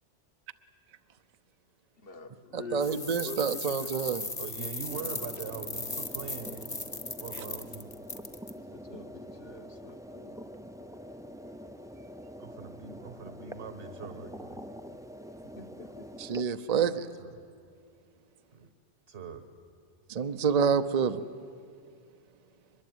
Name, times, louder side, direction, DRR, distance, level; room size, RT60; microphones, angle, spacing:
voice 1, 2.0-3.9 4.6-4.7 8.7-10.4 15.4-16.1, left 2 dB, 55° left, 7 dB, 1.5 m, -45 dB
voice 2, 2.5-4.2 16.2-17.1 20.1-21.2, right 6 dB, 40° right, 10 dB, 0.7 m, -28 dB
sound 1, 2.8-8.5, left 3 dB, 35° left, 1.5 m, -38 dB
voice 3, 4.4-6.8 7.2-7.9 12.4-14.6 16.9-17.4 18.5-18.7 19.1-19.5, right 6 dB, 70° right, 8 dB, 1.6 m, -42 dB
sound 2, 4.9-16.4, equal, 5° right, 0.4 m, -45 dB
23.0 x 21.5 x 9.4 m, 2.4 s
omnidirectional pair, 1.2 m